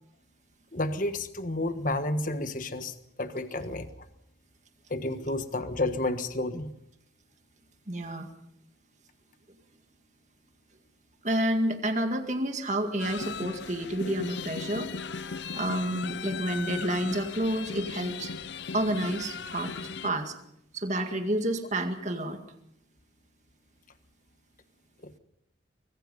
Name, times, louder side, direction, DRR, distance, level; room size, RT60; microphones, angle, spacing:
voice 1, 0.7-3.9 4.9-6.7 25.0-25.1, left 2 dB, 45° left, 9 dB, 1.5 m, -31 dB
voice 2, 7.9-8.3 11.2-14.9 15.2-18.3 18.7-19.7 20.0-20.3 20.7-22.4, right 1 dB, 40° right, 5 dB, 2.1 m, -29 dB
sound 1, 13.0-20.1, left 5 dB, 65° left, 0.7 m, -37 dB
25.0 x 21.0 x 5.4 m, 0.78 s
head